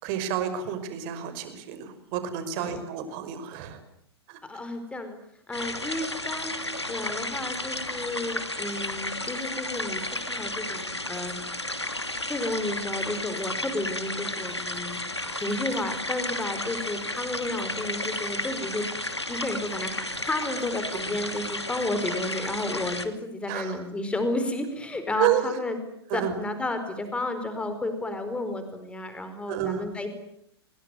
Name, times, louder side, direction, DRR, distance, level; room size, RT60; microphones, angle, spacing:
voice 1, 0.0-3.8 4.3-4.4 23.5-23.8 25.2-25.4 26.1-26.3 29.5-29.9, right 11 dB, 40° right, 10 dB, 5.6 m, -29 dB
voice 2, 4.5-5.2 5.5-10.0 10.3-11.3 12.3-15.0 15.3-18.9 19.3-25.8 26.1-30.1, left 2 dB, 10° left, 9 dB, 4.5 m, -32 dB
sound 1, 5.5-23.1, left 1 dB, 90° left, 2.6 m, -33 dB
28.5 x 21.5 x 9.4 m, 0.74 s
figure-of-eight pair, 105°, 14 cm